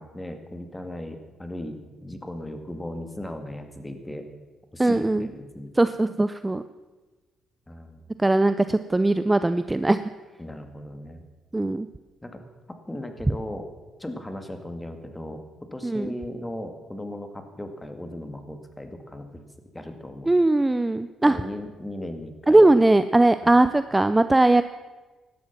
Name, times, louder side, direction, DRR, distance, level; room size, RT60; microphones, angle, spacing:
voice 1, 0.0-4.3 4.7-5.7 7.7-8.1 10.4-11.3 12.2-12.4 12.7-13.7 14.0-19.4 19.7-20.3 21.2-22.8 23.4-23.6, left 1 dB, 10° left, 6 dB, 2.1 m, -37 dB
voice 2, 4.8-5.3 5.8-6.6 8.2-10.0 11.5-11.9 15.8-16.1 20.3-21.4 22.5-24.6, right 2 dB, 15° right, 12 dB, 0.5 m, -20 dB
17.0 x 12.5 x 6.0 m, 1.2 s
cardioid pair, 90°, 0 cm